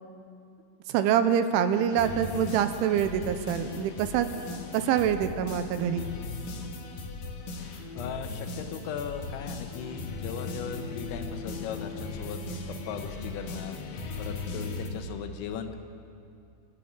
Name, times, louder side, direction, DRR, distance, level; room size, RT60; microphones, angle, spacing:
voice 1, 0.9-4.3 4.7-6.1, right 9 dB, 80° right, 9 dB, 3.2 m, -25 dB
sound 1, 1.9-14.9, left 3 dB, 60° left, 2.6 m, -38 dB
voice 2, 8.0-15.8, left 7 dB, 85° left, 6 dB, 3.8 m, -38 dB
23.0 x 13.5 x 8.8 m, 2.5 s
omnidirectional pair, 5.8 m